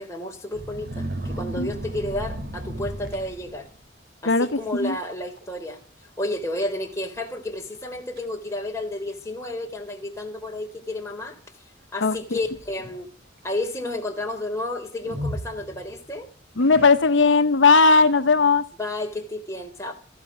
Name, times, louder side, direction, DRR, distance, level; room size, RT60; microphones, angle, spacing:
voice 1, 0.0-3.7 4.2-5.8 6.2-11.4 11.9-13.1 13.4-16.3 18.8-19.9, left 1 dB, 15° left, 3.8 m, -31 dB
sound 1, 0.5-3.8 4.4-4.7 5.0-5.4 5.7-5.8 6.6-6.7 7.2-7.3 7.8-8.3 9.1-9.2 12.0-13.0 15.0-16.1 16.6-17.3, right 1 dB, 55° right, 3.1 m, -34 dB
voice 2, 16.6-18.6, left 4 dB, 85° left, 1.0 m, -17 dB
15.5 x 12.0 x 7.4 m
head